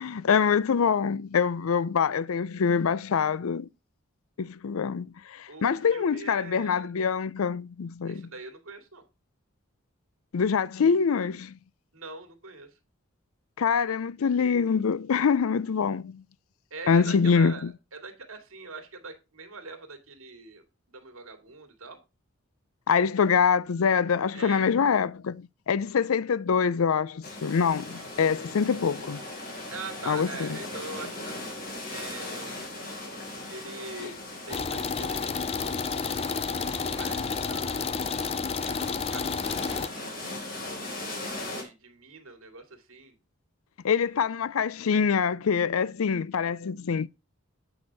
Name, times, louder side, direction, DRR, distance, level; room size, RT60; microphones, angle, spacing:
voice 1, 0.0-3.7 4.4-8.3 10.3-11.5 13.6-16.2 16.9-17.7 22.9-29.2 30.1-30.5 34.0-34.1 43.8-47.1, left 6 dB, 90° left, 0.5 m, -25 dB
voice 2, 5.5-6.9 8.1-9.0 11.9-12.7 16.7-22.0 24.3-24.7 29.7-32.6 33.5-34.2 34.5-35.4 36.1-38.3 38.6-40.0 41.4-43.2, right 4 dB, 85° right, 2.4 m, -43 dB
sound 1, 27.2-41.6, left 2 dB, 45° left, 3.8 m, -39 dB
sound 2, 34.5-39.9, left 5 dB, 30° left, 0.4 m, -30 dB
8.9 x 6.2 x 4.7 m
head